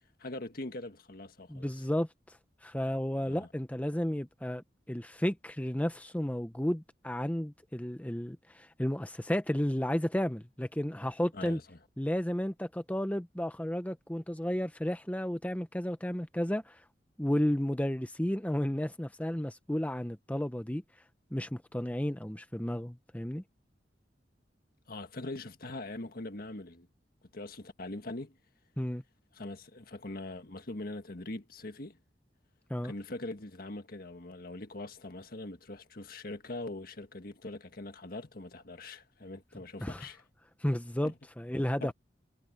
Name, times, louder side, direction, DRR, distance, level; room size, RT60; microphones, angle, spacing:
voice 1, 0.2-1.8 3.3-3.5 11.3-11.8 24.9-26.9 27.3-28.4 29.3-32.0 32.8-40.2 41.0-41.1 41.8-41.9, left 2 dB, 55° left, 1.7 m, -42 dB
voice 2, 1.5-2.1 2.6-11.6 12.0-16.8 17.2-20.8 21.3-23.4 28.8-29.0 32.7-32.9 39.8-40.1 40.6-41.9, equal, 10° left, 0.9 m, -32 dB
head